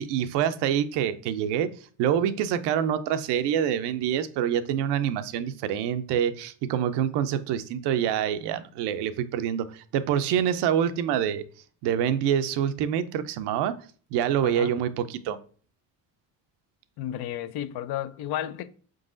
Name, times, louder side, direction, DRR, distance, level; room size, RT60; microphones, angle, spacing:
voice 1, 0.0-1.7 2.0-11.4 11.8-13.8 14.1-15.4, right 9 dB, 75° right, 0.6 m, -26 dB
voice 2, 14.4-14.7 17.0-18.7, left 11 dB, 65° left, 0.5 m, -32 dB
4.7 x 3.8 x 2.5 m
supercardioid pair, 85°, 41 cm